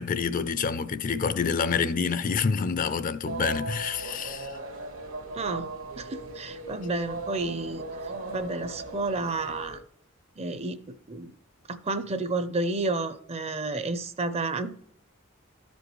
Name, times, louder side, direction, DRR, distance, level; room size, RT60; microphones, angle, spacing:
voice 1, 0.0-4.5, left 5 dB, 40° left, 0.4 m, -27 dB
sound 1, 3.2-9.8, right 2 dB, 80° right, 1.6 m, -38 dB
voice 2, 5.3-5.7 6.0-9.8 10.4-10.8 11.1-11.3 11.7-14.7, right 3 dB, 30° right, 0.5 m, -31 dB
13.5 x 5.2 x 3.1 m
head